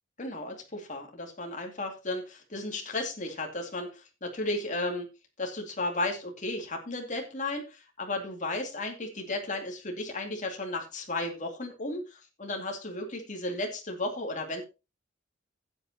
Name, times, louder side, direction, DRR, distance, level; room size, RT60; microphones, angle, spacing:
voice 1, 0.2-5.1 5.4-14.6, left 2 dB, 40° left, 2 dB, 2.4 m, -34 dB
15.0 x 8.3 x 2.9 m, 0.28 s
head